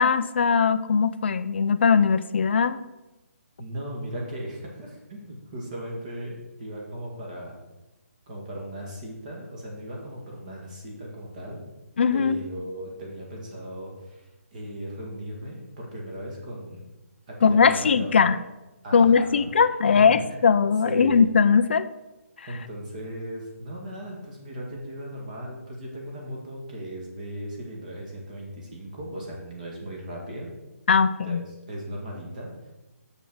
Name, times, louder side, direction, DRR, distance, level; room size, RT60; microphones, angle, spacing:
voice 1, 0.0-2.8 12.0-12.4 17.4-18.4 18.9-21.9 22.4-22.5 30.9-31.4, left 6 dB, 45° left, 11 dB, 0.6 m, -20 dB
voice 2, 3.6-7.6 8.3-11.6 12.1-16.8 17.3-18.2 18.8-19.5 19.9-20.2 20.8-21.1 22.5-30.5 31.3-32.7, right 1 dB, 30° right, -2 dB, 2.2 m, -37 dB
7.0 x 6.7 x 6.2 m, 1.0 s
hypercardioid pair, 170°, 8 cm